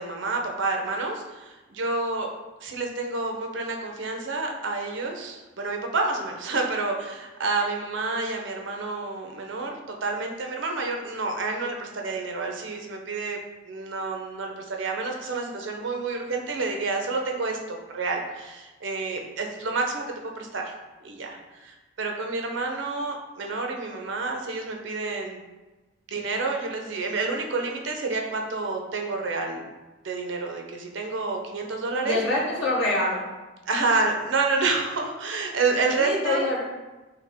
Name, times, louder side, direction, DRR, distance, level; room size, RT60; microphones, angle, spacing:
voice 1, 0.0-2.3 2.6-13.4 13.7-20.0 20.4-20.7 21.0-25.4 26.1-29.7 30.0-32.2 33.7-36.5, right 3 dB, 75° right, 2 dB, 0.6 m, -29 dB
voice 2, 32.0-33.2 36.0-36.6, left 2 dB, 85° left, -5 dB, 1.2 m, -25 dB
5.6 x 2.1 x 3.4 m, 1.1 s
head